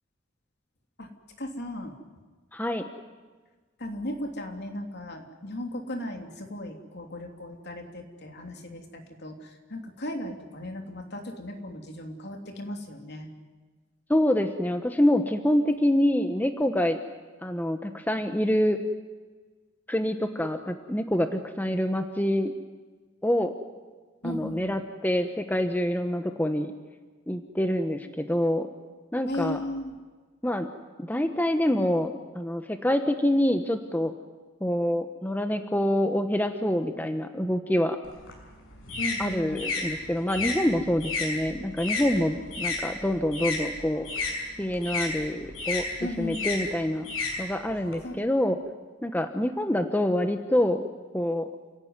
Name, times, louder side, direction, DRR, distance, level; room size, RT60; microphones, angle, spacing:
voice 1, 1.4-2.0 3.8-13.3 24.2-24.8 29.3-30.0 39.0-39.8 46.0-46.5 48.0-48.2, left 1 dB, 55° left, 3 dB, 3.2 m, -36 dB
voice 2, 2.5-2.8 14.1-17.0 17.4-18.8 19.9-22.5 23.2-23.5 24.2-26.7 27.3-28.7 29.1-29.6 30.4-30.7 31.0-34.1 34.6-38.0 39.2-44.1 44.6-45.8 46.2-47.1 47.4-48.6 49.0-50.9 51.1-51.5, left 1 dB, 10° left, 7 dB, 1.0 m, -26 dB
sound 1, 38.0-42.8 43.1-47.9, left 3 dB, 85° left, 6.1 m, -32 dB
29.0 x 17.0 x 9.6 m, 1.4 s
head